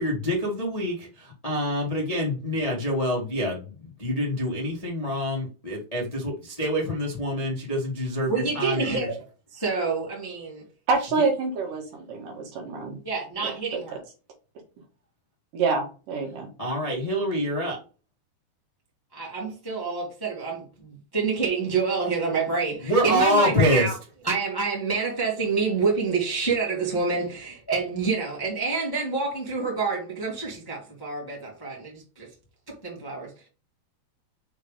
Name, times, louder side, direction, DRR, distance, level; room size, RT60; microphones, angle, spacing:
voice 1, 0.0-9.1 16.6-17.8 22.8-23.9, equal, 30° left, 0.6 m, -26 dB
voice 2, 8.3-9.1 9.5-10.6 13.0-14.0 19.1-23.9 24.2-32.3 32.7-33.5, right 4 dB, 10° left, 1.2 m, -28 dB
voice 3, 10.9-13.0 13.4-13.5 15.5-16.5, right 4 dB, 60° right, 3.0 m, -26 dB
6.5 x 3.6 x 4.9 m
omnidirectional pair, 4.5 m